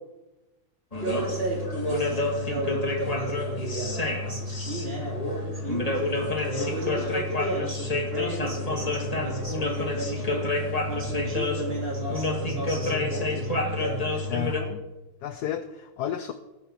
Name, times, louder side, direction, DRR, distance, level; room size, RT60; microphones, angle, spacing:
sound 1, 0.9-14.6, left 2 dB, 20° left, 1.5 m, -29 dB
voice 1, 1.0-10.5 10.9-14.2, right 1 dB, 25° right, -1 dB, 2.8 m, -33 dB
voice 2, 14.3-14.8 15.2-16.3, left 10 dB, 80° left, 9 dB, 0.9 m, -32 dB
19.5 x 6.7 x 4.3 m, 1.1 s
omnidirectional pair, 2.3 m